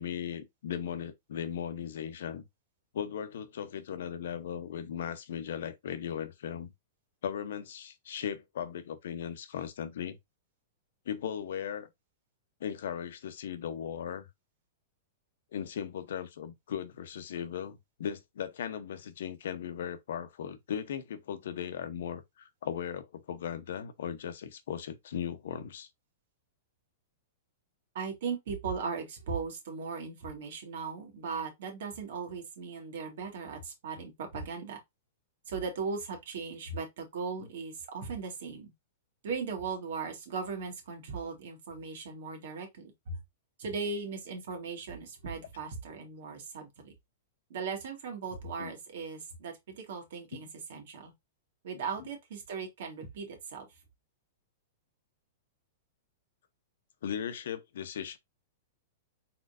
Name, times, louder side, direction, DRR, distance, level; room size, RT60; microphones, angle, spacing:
voice 1, 0.0-2.4 2.9-6.7 7.2-10.2 11.1-11.9 12.6-14.3 15.5-25.9 37.4-37.5 48.6-48.7 50.3-50.4 51.7-51.8 57.0-58.2, left 8 dB, 75° left, 0.8 m, -37 dB
voice 2, 27.9-34.8 35.5-38.7 39.2-43.2 43.6-46.9 47.5-51.1 51.6-53.7, right 5 dB, 70° right, 1.9 m, -38 dB
4.2 x 3.8 x 2.5 m
hypercardioid pair, 135°, 0 cm